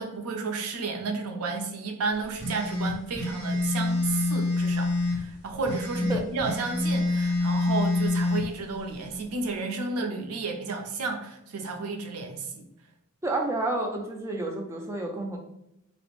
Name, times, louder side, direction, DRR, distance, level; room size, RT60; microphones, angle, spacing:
voice 1, 0.0-12.6, right 3 dB, 85° right, 4 dB, 0.4 m, -32 dB
sound 1, 2.4-5.2 5.6-8.4, left 2 dB, 10° left, 0.8 m, -26 dB
voice 2, 13.2-15.4, right 2 dB, 10° right, 0 dB, 0.3 m, -30 dB
2.4 x 2.0 x 3.0 m, 0.85 s
head